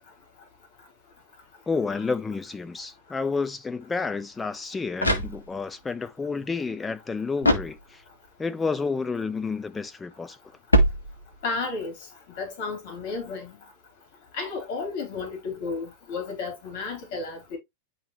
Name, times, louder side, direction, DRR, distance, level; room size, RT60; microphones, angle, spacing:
voice 1, 1.7-8.0 8.4-10.4, left 4 dB, 15° left, 1.0 m, -30 dB
sound 1, 4.6-5.8 7.4-8.3 10.7-11.6, equal, 80° left, 1.3 m, -25 dB
voice 2, 11.4-11.9 12.4-13.5 14.3-17.6, left 4 dB, 50° left, 4.0 m, -32 dB
10.5 x 3.6 x 3.1 m
figure-of-eight pair, 90°, 0 cm